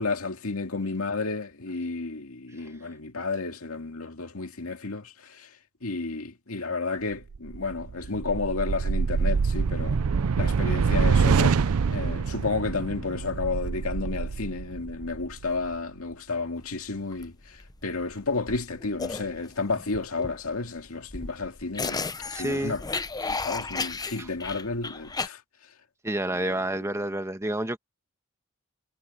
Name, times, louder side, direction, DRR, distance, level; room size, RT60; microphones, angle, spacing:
voice 1, 0.0-5.5 5.8-10.0 10.4-11.6 11.9-22.8 23.2-25.4 26.3-26.6, left 3 dB, 75° left, 2.2 m, -32 dB
sound 1, 7.3-15.7, right 5 dB, 80° right, 0.5 m, -26 dB
sound 2, 16.6-25.3, left 4 dB, 20° left, 0.7 m, -34 dB
voice 2, 22.3-22.8 24.2-24.3 26.0-27.8, right 1 dB, 15° right, 1.4 m, -29 dB
head